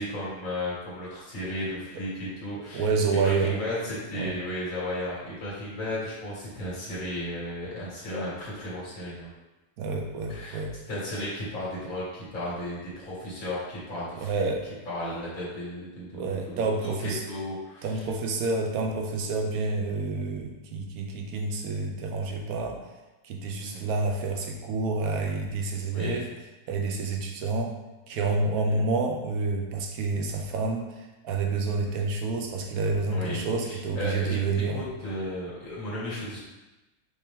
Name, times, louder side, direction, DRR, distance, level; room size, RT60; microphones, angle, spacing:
voice 1, 0.0-2.9 3.2-9.3 10.3-10.6 10.9-14.5 14.9-18.0 23.5-23.8 25.9-26.3 28.6-28.8 33.1-36.4, left 1 dB, 50° left, -8 dB, 2.1 m, -34 dB
voice 2, 2.5-3.6 4.1-4.4 9.8-10.7 14.2-14.6 16.1-17.2 17.8-22.9 23.2-26.3 26.7-27.7 28.1-34.9, right 3 dB, 65° right, 2 dB, 1.1 m, -28 dB
5.2 x 2.9 x 3.5 m, 1.1 s
omnidirectional pair, 1.8 m